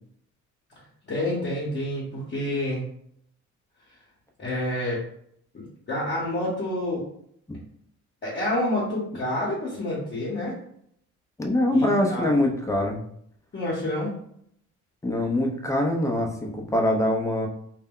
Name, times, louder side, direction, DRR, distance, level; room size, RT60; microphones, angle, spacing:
voice 1, 1.1-2.8 4.4-5.0 5.5-5.6 5.9-7.0 8.2-10.6 11.7-12.3 13.5-14.2, left 1 dB, 35° left, -6 dB, 0.9 m, -28 dB
voice 2, 11.4-13.0 15.0-17.5, left 1 dB, 10° left, 1 dB, 0.5 m, -23 dB
2.2 x 2.1 x 3.6 m, 0.68 s
cardioid pair, 90°, 30 cm